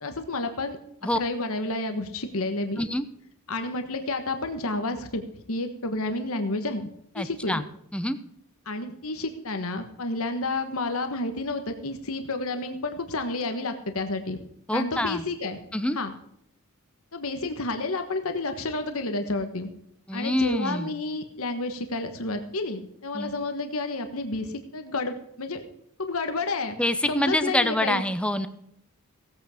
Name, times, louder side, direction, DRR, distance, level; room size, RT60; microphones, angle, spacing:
voice 1, 0.0-0.8 1.1-2.8 3.5-5.2 5.5-6.9 7.1-7.6 8.6-14.4 14.7-15.6 15.9-16.1 17.1-19.7 20.1-25.6 26.0-26.8 27.1-28.0, left 2 dB, 65° left, 7 dB, 1.4 m, -30 dB
voice 2, 7.2-7.6 7.9-8.2 14.7-15.2 15.7-16.0 20.1-20.9 23.1-23.3 26.8-28.5, left 1 dB, 5° left, 11 dB, 0.8 m, -26 dB
17.0 x 8.6 x 5.0 m, 0.73 s
head